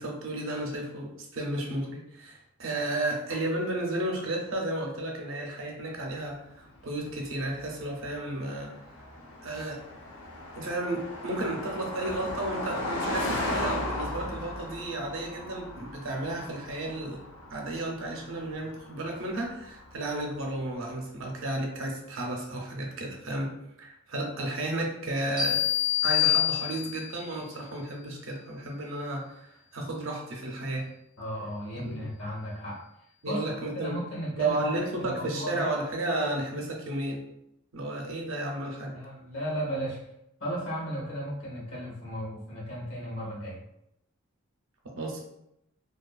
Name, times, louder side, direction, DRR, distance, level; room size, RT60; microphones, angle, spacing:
voice 1, 0.0-8.7 9.4-9.8 10.6-17.2 17.5-25.7 26.0-30.9 31.7-32.0 33.2-34.0 34.4-37.3 37.7-39.0 44.8-45.2, right 1 dB, 70° right, 1 dB, 0.6 m, -33 dB
Car passing by, 6.7-20.4, left 1 dB, 80° left, 0.6 m, -37 dB
sound 1, 25.4-27.2, left 12 dB, 5° right, 0.4 m, -26 dB
voice 2, 31.2-32.8 33.2-35.7 38.9-40.0 40.4-43.6, equal, 65° left, -6 dB, 1.3 m, -35 dB
2.7 x 2.3 x 2.3 m, 0.81 s
head